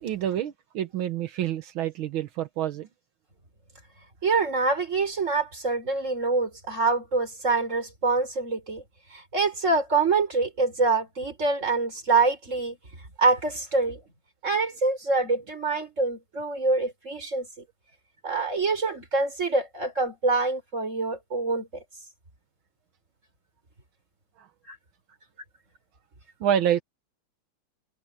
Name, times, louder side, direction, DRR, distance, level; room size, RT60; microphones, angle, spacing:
voice 1, 0.0-2.9 24.4-24.5 26.4-26.8, right 10 dB, 80° right, 1.8 m, -27 dB
voice 2, 4.2-8.8 9.1-12.8 13.2-14.0 14.4-17.5 18.2-21.8 24.7-24.8, right 3 dB, 35° right, 5.0 m, -25 dB
omnidirectional pair, 2.2 m